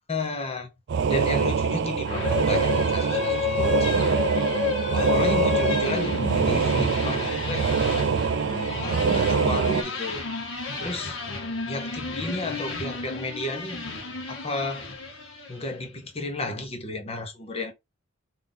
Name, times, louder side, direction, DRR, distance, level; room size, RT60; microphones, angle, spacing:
voice 1, 0.1-0.7 1.1-4.1 4.9-7.7 8.7-10.2 10.8-11.2 11.7-13.8 14.3-14.9 15.5-17.7, left 2 dB, 30° left, 0.9 m, -32 dB
sound 1, 0.9-9.8, right 6 dB, 60° right, 0.4 m, -24 dB
sound 2, 2.0-15.7, left 5 dB, 75° left, 1.3 m, -31 dB
3.6 x 2.7 x 3.9 m
head